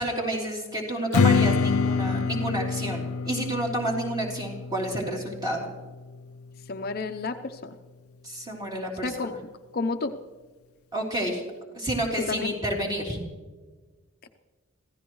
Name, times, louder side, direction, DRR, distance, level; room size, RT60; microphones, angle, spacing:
voice 1, 0.0-5.7 8.2-9.3 10.9-11.5 11.7-13.2, right 1 dB, 20° right, -2 dB, 3.3 m, -30 dB
Strum, 1.1-6.4, left 5 dB, 85° left, 0.6 m, -26 dB
voice 2, 6.7-7.8 9.0-9.3 9.7-10.2 11.2-11.3 12.2-12.5 14.2-14.3, left 3 dB, 45° left, 6 dB, 0.7 m, -31 dB
26.0 x 15.5 x 3.1 m, 1.4 s
head